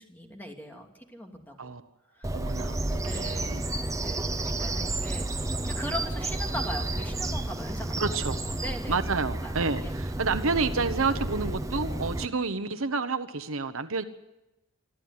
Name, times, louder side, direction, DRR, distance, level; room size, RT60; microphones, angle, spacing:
voice 1, 0.0-1.7 2.1-2.4 3.0-3.6 4.0-5.3 5.6-7.9 8.4-9.0 9.4-9.6 9.8-10.0, equal, 10° left, 2 dB, 2.7 m, -39 dB
Bird vocalization bird call bird song, 2.2-12.3, right 2 dB, 15° right, 0.8 m, -31 dB
voice 2, 2.3-2.8 3.1-3.6 8.0-8.4 8.9-14.0, right 4 dB, 65° right, 10 dB, 1.1 m, -29 dB
26.5 x 12.5 x 9.6 m, 0.96 s
head